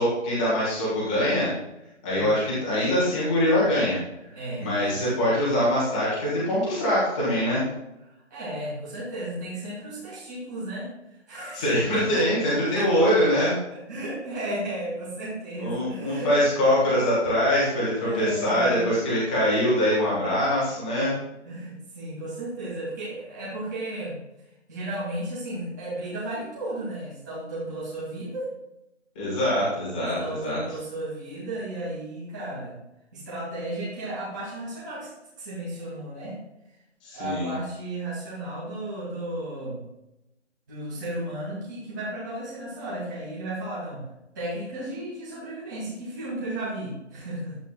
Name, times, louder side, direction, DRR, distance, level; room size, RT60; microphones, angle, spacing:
voice 1, 0.0-1.5 2.0-4.0 4.6-7.6 11.5-13.5 15.6-21.1 29.1-30.6 37.0-37.5, equal, 5° left, -8 dB, 1.5 m, -23 dB
voice 2, 2.1-2.4 4.3-5.2 8.0-10.9 11.3-11.6 11.9-13.2 13.7-16.3 17.9-18.9 21.4-24.2 24.7-28.5 30.2-32.8 33.1-35.1 35.4-36.4 37.1-39.8 40.7-44.1 44.3-47.6, right 1 dB, 15° right, -8 dB, 2.4 m, -34 dB
12.0 x 8.1 x 2.4 m, 0.89 s
figure-of-eight pair, 175°, 37 cm